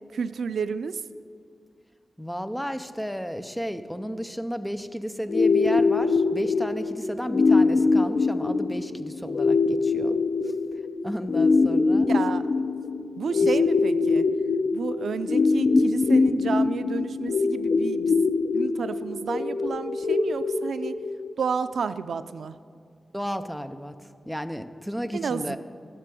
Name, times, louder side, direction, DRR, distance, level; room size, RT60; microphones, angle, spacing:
voice 1, 0.1-1.0 12.1-12.7 13.2-14.3 14.7-21.0 21.4-22.6 25.1-25.6, right 5 dB, 90° right, 13 dB, 0.4 m, -31 dB
voice 2, 2.2-10.2 10.4-10.5 11.0-12.1 13.3-13.6 23.1-23.9 24.3-25.6, equal, ahead, 9 dB, 0.5 m, -33 dB
sound 1, 5.3-21.3, left 4 dB, 60° left, 0.8 m, -23 dB
13.5 x 6.7 x 9.0 m, 2.2 s
wide cardioid pair, 180°, 0 cm